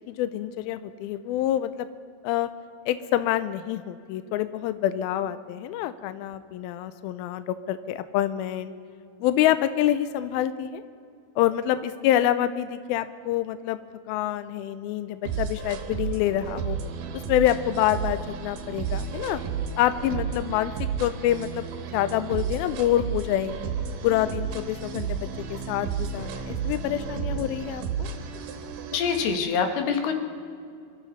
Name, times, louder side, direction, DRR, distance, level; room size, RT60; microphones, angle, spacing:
voice 1, 0.1-1.9 2.2-2.5 2.9-8.7 9.2-10.8 11.4-13.8 14.1-16.8 17.1-19.4 19.8-21.7 21.9-23.7 24.0-28.1, left 12 dB, 85° left, 12 dB, 2.1 m, -26 dB
sound 1, 15.3-29.4, right 6 dB, 65° right, 2.4 m, -32 dB
voice 2, 28.9-30.1, left 6 dB, 70° left, 5 dB, 3.1 m, -25 dB
25.5 x 13.5 x 4.1 m, 2.3 s
omnidirectional pair, 4.9 m